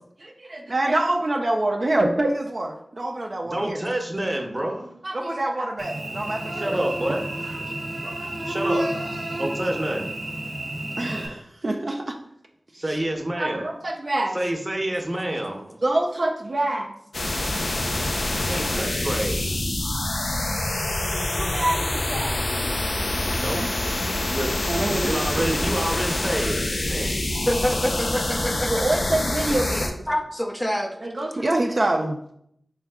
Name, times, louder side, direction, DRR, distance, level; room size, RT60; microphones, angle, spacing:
voice 1, 0.2-3.8 5.0-6.8 8.0-8.3 9.0-9.1 11.0-12.2 12.9-13.0 13.4-14.4 15.8-17.0 21.3-22.4 23.5-23.7 24.7-25.5 27.1-27.4 28.7-30.0 31.0-32.2, right 1 dB, 55° right, 2 dB, 0.4 m, -26 dB
voice 2, 3.4-4.9 6.5-7.2 8.5-8.9 9.4-10.1 12.7-13.7 14.3-15.8 18.4-19.6 23.3-23.6 24.2-24.6 25.0-27.2, right 1 dB, 30° right, 2 dB, 0.8 m, -28 dB
Cricket / Buzz, 5.8-11.3, right 1 dB, 90° right, 0.7 m, -30 dB
sound 1, 17.1-29.9, left 1 dB, 75° left, 0.5 m, -26 dB
voice 3, 27.5-29.0 30.1-31.0, equal, 10° left, 4 dB, 0.4 m, -26 dB
3.5 x 3.1 x 3.5 m, 0.71 s
cardioid pair, 45°, 0 cm